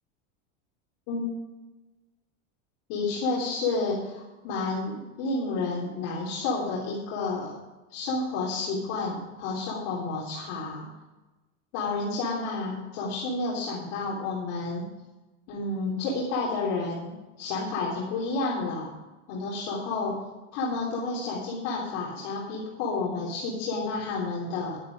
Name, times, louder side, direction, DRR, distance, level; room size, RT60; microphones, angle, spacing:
voice 1, 2.9-7.6 7.9-10.8 11.7-14.9 15.5-18.9 19.3-20.2 20.5-24.8, left 3 dB, 60° left, -5 dB, 3.6 m, -30 dB
11.5 x 9.7 x 4.9 m, 1.1 s
supercardioid pair, 130°, 37 cm